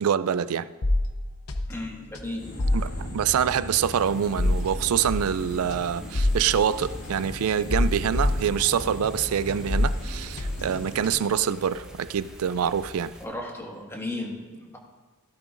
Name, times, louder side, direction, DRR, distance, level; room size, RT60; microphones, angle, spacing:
voice 1, 0.0-0.7 2.7-13.1, right 8 dB, 80° right, 0.4 m, -25 dB
sound 1, 0.8-9.2 9.5-11.4, left 1 dB, 85° left, 0.8 m, -28 dB
voice 2, 1.7-2.4 13.2-14.8, left 2 dB, 10° left, 1.7 m, -35 dB
sound 2, 2.4-11.1, left 1 dB, 50° left, 4.2 m, -39 dB
sound 3, 3.8-13.3, equal, 5° right, 1.1 m, -47 dB
16.0 x 12.0 x 2.6 m
head